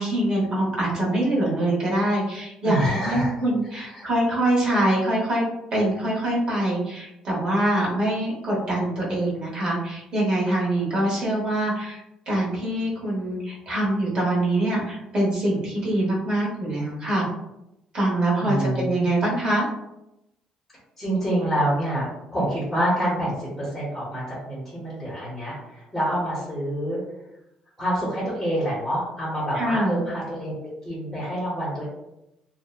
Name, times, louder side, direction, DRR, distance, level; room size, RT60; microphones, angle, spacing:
voice 1, 0.0-5.5 5.7-17.3 17.9-19.6 29.5-30.0, right 1 dB, 35° right, -5 dB, 0.9 m, -24 dB
voice 2, 2.6-3.3 3.9-4.1 18.4-18.9 21.0-27.0 27.8-30.5 30.8-31.8, right 1 dB, 5° left, -7 dB, 0.8 m, -27 dB
2.7 x 2.0 x 2.3 m, 0.88 s
cardioid pair, 150°, 2 cm